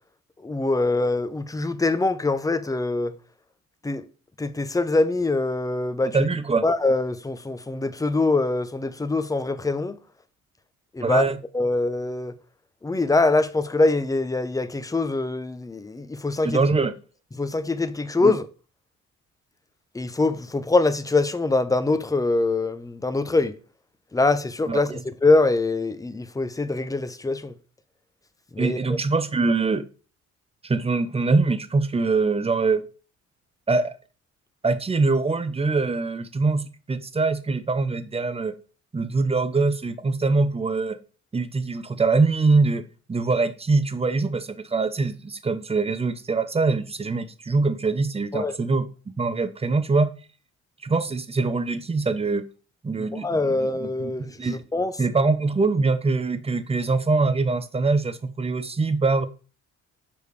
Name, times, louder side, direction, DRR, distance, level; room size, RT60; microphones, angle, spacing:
voice 1, 0.4-3.1 3.8-4.1 4.4-6.3 6.6-10.0 10.9-11.2 11.5-12.3 12.8-16.6 17.4-18.5 19.9-23.5 24.1-27.5 28.5-29.0 48.3-48.5 53.0-55.0, left 3 dB, 10° left, 0.6 m, -24 dB
voice 2, 6.0-6.6 11.0-11.4 16.4-17.0 18.2-18.4 24.7-25.0 28.6-29.8 30.6-32.8 33.7-34.0 34.6-38.6 38.9-41.0 41.3-42.8 43.1-48.9 49.2-50.1 50.8-52.4 52.8-54.1 54.4-54.6 55.0-59.3, right 3 dB, 20° right, 0.7 m, -23 dB
6.9 x 5.0 x 3.3 m
cardioid pair, 90°, 30 cm